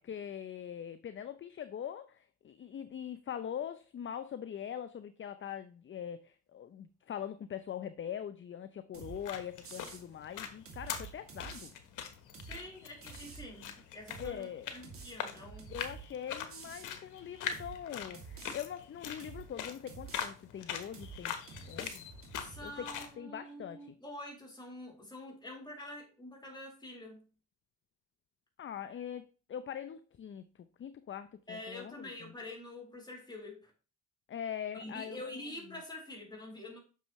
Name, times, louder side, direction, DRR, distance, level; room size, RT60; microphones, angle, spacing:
voice 1, 0.0-11.7 14.2-14.7 15.7-21.4 21.7-22.0 22.6-22.9 23.2-23.9 28.6-32.3 34.3-35.2, left 9 dB, 40° left, 0.6 m, -42 dB
sound 1, 8.9-9.2 9.6-10.0 10.7-11.7 12.3-12.6 13.0-13.5 14.1-14.4 14.8-16.1 16.5-16.9 17.5-17.8 18.1-18.6 19.2-19.5 19.9-20.3 20.9-21.2 21.5-22.6, right 5 dB, 45° right, 2.5 m, -49 dB
sound 2, 9.0-23.1, left 8 dB, 80° left, 1.3 m, -43 dB
voice 2, 12.4-15.7 22.4-27.3 31.5-33.7 34.7-36.8, left 1 dB, 15° left, 4.4 m, -46 dB
9.2 x 6.5 x 3.1 m
cardioid pair, 90°, 30 cm